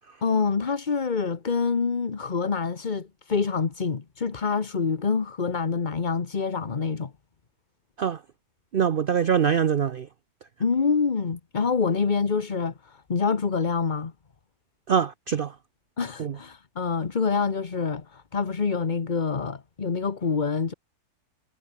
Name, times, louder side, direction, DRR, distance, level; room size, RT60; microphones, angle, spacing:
voice 1, 0.2-7.1 10.6-14.1 16.0-20.7, left 5 dB, 30° left, 1.1 m, -26 dB
voice 2, 8.7-10.1 14.9-15.5 16.2-16.3, right 8 dB, 60° right, 0.6 m, -23 dB
omnidirectional pair, 1.8 m